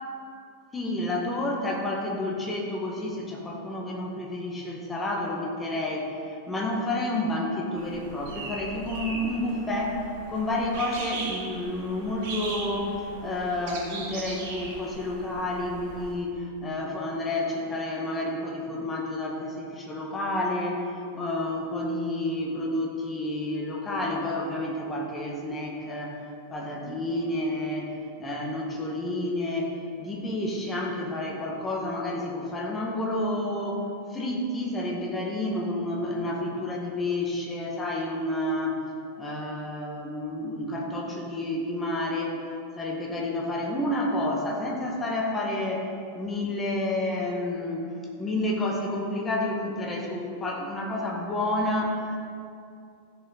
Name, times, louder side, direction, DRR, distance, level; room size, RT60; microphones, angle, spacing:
voice 1, 0.7-12.9 13.2-20.9 21.1-26.2 26.5-38.8 39.2-42.4 42.8-47.9 48.2-52.2, left 1 dB, 15° left, -1 dB, 1.9 m, -30 dB
sound 1, 7.8-16.1, right 3 dB, 45° right, 2.3 m, -39 dB
14.5 x 6.8 x 4.4 m, 2.5 s
figure-of-eight pair, 90°, 0 cm